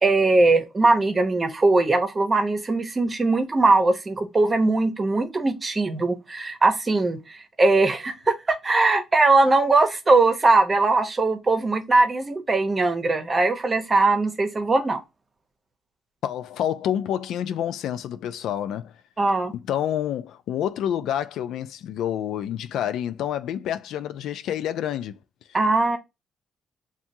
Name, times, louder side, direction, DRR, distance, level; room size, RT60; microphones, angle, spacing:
voice 1, 0.0-7.2 7.6-15.0 19.2-19.5 25.5-26.0, right 3 dB, 30° right, 0.8 m, -20 dB
voice 2, 16.2-18.9 19.5-25.2, left 10 dB, 80° left, 0.4 m, -28 dB
7.1 x 2.4 x 2.6 m
cardioid pair, 90°, 0 cm